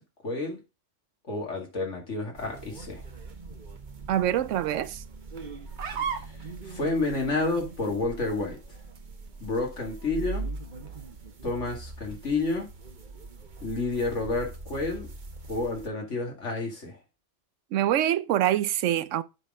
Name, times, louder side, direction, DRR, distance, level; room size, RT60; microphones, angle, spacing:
voice 1, 0.2-0.6 1.3-3.1 6.6-8.6 9.4-10.5 11.4-12.7 13.6-15.1 15.5-17.0, left 3 dB, 80° left, 2.6 m, -30 dB
sound 1, 2.3-15.9, right 3 dB, 45° right, 1.1 m, -42 dB
voice 2, 4.1-5.0 17.7-19.2, right 12 dB, 90° right, 1.0 m, -25 dB
sound 2, 5.6-12.5, right 6 dB, 70° right, 1.4 m, -41 dB
8.1 x 4.2 x 5.0 m
omnidirectional pair, 1.2 m